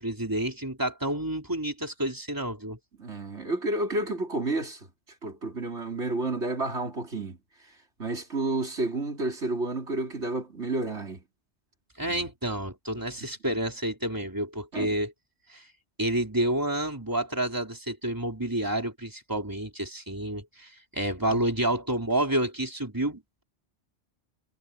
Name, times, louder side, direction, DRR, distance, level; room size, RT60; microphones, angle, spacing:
voice 1, 0.0-2.8 12.0-15.1 15.5-15.6 16.0-23.2, right 1 dB, 15° right, 3.9 m, -29 dB
voice 2, 3.0-4.9 5.2-11.2 12.1-12.3 13.5-13.6 14.7-15.0 21.3-21.4, right 2 dB, 80° right, 4.1 m, -31 dB
omnidirectional pair, 1.1 m